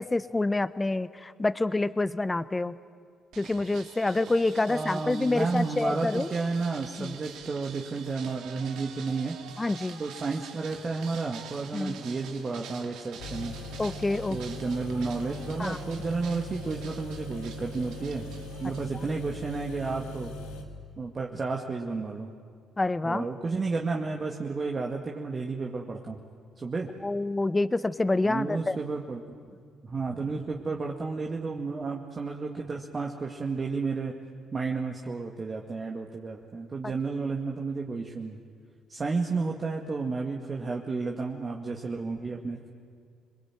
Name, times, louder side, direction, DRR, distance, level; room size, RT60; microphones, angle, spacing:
voice 1, 0.0-2.8 3.4-6.3 7.0-7.2 9.6-10.0 11.7-12.0 13.8-14.4 15.6-15.8 22.8-23.3 27.0-28.8, left 2 dB, 20° left, 15 dB, 0.9 m, -27 dB
sound 1, 3.3-18.8, right 7 dB, 75° right, 2.2 m, -46 dB
voice 2, 4.7-9.4 10.0-13.6 14.3-18.3 18.6-20.3 21.0-22.3 23.0-26.2 26.6-26.9 28.2-29.2 29.8-34.1 34.5-38.4 38.9-42.7, right 4 dB, 35° right, 0 dB, 2.0 m, -32 dB
sound 2, 13.2-20.6, left 1 dB, 90° left, 2.4 m, -40 dB
26.0 x 21.0 x 9.1 m, 2.1 s
supercardioid pair, 65°, 0 cm